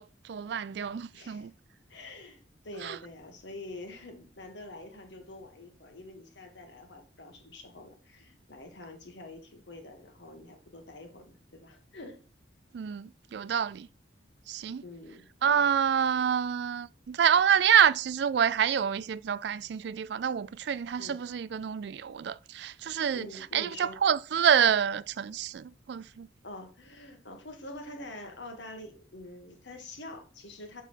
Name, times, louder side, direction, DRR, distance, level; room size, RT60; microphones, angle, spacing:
voice 1, 0.0-1.5 2.8-3.0 12.7-13.9 14.5-14.8 15.4-26.3, right 8 dB, 60° right, 0.3 m, -27 dB
voice 2, 1.1-1.5 1.9-12.2 14.8-15.3 15.9-16.3 21.0-21.2 23.1-24.0 26.4-30.8, left 2 dB, 65° left, 1.6 m, -46 dB
6.2 x 5.4 x 4.4 m
head